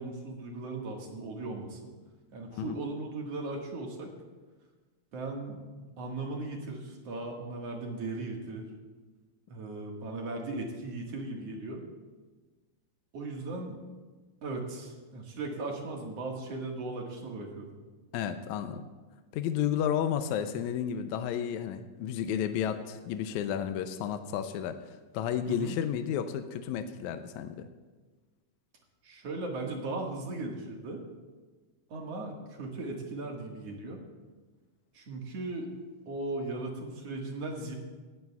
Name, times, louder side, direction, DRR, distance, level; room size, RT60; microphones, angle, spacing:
voice 1, 0.0-1.8 2.3-4.1 5.1-5.6 6.0-8.7 9.5-11.8 13.1-13.8 14.4-17.8 25.5-25.8 29.0-31.0 31.9-34.0 34.9-35.7 36.1-37.7, right 2 dB, 55° right, 0 dB, 2.6 m, -37 dB
voice 2, 18.1-18.8 19.3-27.7, left 9 dB, 80° left, 8 dB, 1.9 m, -32 dB
18.5 x 15.0 x 2.4 m, 1.3 s
omnidirectional pair, 3.6 m